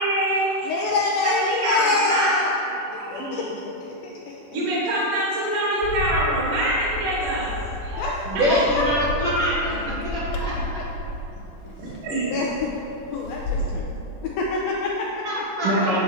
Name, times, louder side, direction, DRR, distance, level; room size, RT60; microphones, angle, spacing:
voice 1, 0.0-0.7 1.2-2.3 2.9-3.5 4.5-7.5 8.3-8.6 11.8-12.2 15.6-16.0, right 1 dB, 55° right, -7 dB, 2.8 m, -24 dB
voice 2, 0.7-2.5 3.1-3.5 3.8-4.3 8.0-8.4 8.8-9.3 9.7-9.8 12.3-12.7 13.1-15.4, left 3 dB, 85° left, -2 dB, 2.0 m, -26 dB
Bird, 5.8-13.8, left 1 dB, 70° left, 2.5 m, -32 dB
voice 3, 7.8-10.8 11.6-11.7 15.2-15.9, equal, 85° right, -8 dB, 1.3 m, -25 dB
9.3 x 4.3 x 7.4 m, 2.9 s
omnidirectional pair, 5.0 m